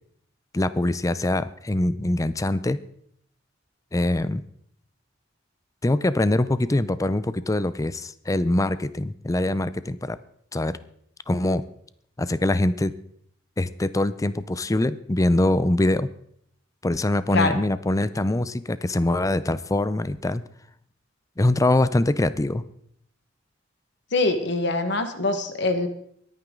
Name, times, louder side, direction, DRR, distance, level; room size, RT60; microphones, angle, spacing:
voice 1, 0.5-2.8 3.9-4.4 5.8-10.2 10.5-10.8 11.3-11.6 12.2-12.9 13.6-16.1 16.8-20.4 21.4-22.6, left 1 dB, 15° left, 15 dB, 0.5 m, -23 dB
voice 2, 24.1-25.9, left 2 dB, 65° left, 8 dB, 1.4 m, -23 dB
22.5 x 9.0 x 3.8 m, 0.67 s
head